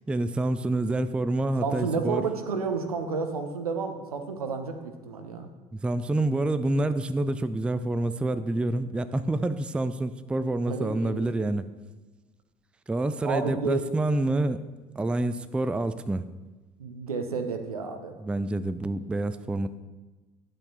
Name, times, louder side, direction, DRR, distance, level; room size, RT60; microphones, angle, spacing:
voice 1, 0.1-2.3 5.7-11.7 12.9-14.6 15.0-16.3 18.2-19.7, right 2 dB, 5° right, 12 dB, 0.4 m, -27 dB
voice 2, 1.6-5.5 10.7-11.3 13.2-13.8 16.8-18.1, right 5 dB, 80° right, 7 dB, 0.9 m, -31 dB
10.5 x 7.9 x 4.1 m, 1.2 s
figure-of-eight pair, 60°, 19 cm